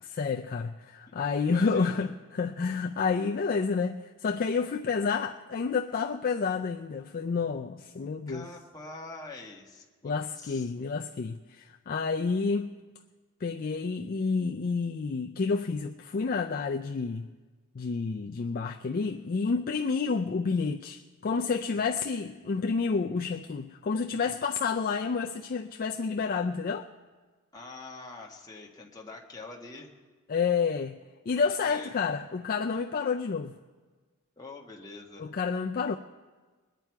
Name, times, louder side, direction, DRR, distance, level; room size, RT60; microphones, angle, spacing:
voice 1, 0.0-8.5 10.0-12.7 13.4-17.3 17.8-26.9 30.3-31.0 31.3-33.5 35.2-36.0, left 5 dB, 40° left, 0.4 m, -29 dB
voice 2, 1.5-2.1 8.3-10.7 27.5-29.9 31.4-31.9 34.4-35.2, left 3 dB, 15° left, 1.4 m, -45 dB
21.5 x 9.0 x 4.6 m
head